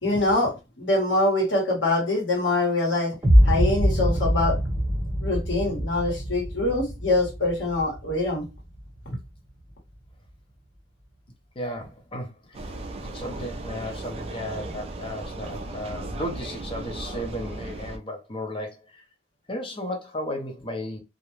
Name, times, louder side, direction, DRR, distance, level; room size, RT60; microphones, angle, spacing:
voice 1, 0.0-3.1 3.4-4.6 5.2-8.5 9.1-9.2, left 2 dB, 80° left, 1.2 m, -24 dB
sound 1, 3.2-9.2, equal, 15° right, 0.8 m, -24 dB
voice 2, 11.6-12.7 13.0-19.0 19.5-21.0, left 1 dB, 30° left, 0.6 m, -34 dB
Vehicle, 12.5-18.0, right 2 dB, 30° right, 0.4 m, -36 dB
2.4 x 2.1 x 3.0 m
head